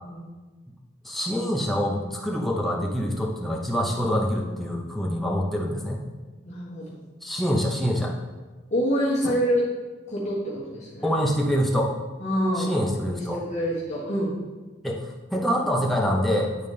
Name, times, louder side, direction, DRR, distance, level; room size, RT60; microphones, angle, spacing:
voice 1, 1.0-6.0 7.2-8.1 11.0-11.9 12.6-13.4 14.8-16.7, equal, ahead, -2 dB, 0.8 m, -25 dB
voice 2, 6.4-7.0 8.7-9.7 10.1-11.1 12.2-12.8 13.1-14.4, equal, 35° left, -8 dB, 1.5 m, -26 dB
10.5 x 4.1 x 3.4 m, 1.3 s
head